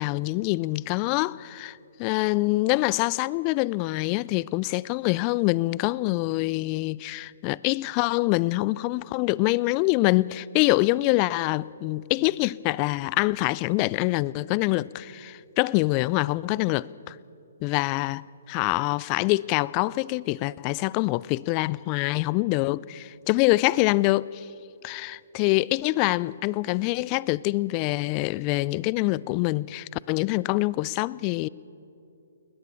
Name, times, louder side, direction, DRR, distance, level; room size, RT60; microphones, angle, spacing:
voice 1, 0.0-17.2 17.6-24.5 24.8-31.5, left 20 dB, 30° left, 0.4 m, -25 dB
21.0 x 20.0 x 7.0 m
figure-of-eight pair, 130°, 0 cm